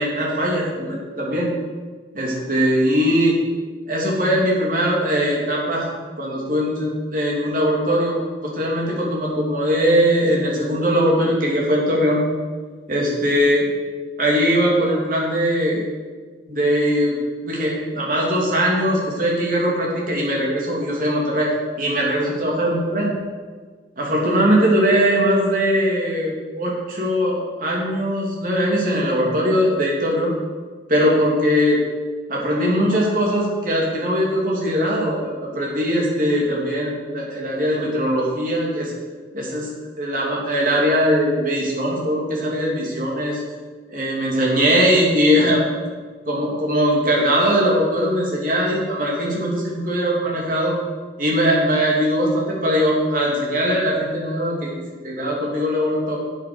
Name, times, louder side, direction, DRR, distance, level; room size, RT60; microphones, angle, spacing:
voice 1, 0.0-1.5 2.1-3.3 3.9-5.9 6.2-8.2 8.4-12.2 12.9-13.7 14.2-15.8 16.5-17.2 17.4-21.5 21.8-23.1 24.0-30.3 30.9-31.8 32.3-38.9 39.3-39.7 40.0-43.4 43.9-45.8 46.3-50.7 51.2-54.7 55.0-56.2, equal, 45° right, -3 dB, 2.7 m, -20 dB
8.4 x 8.4 x 6.2 m, 1.5 s
head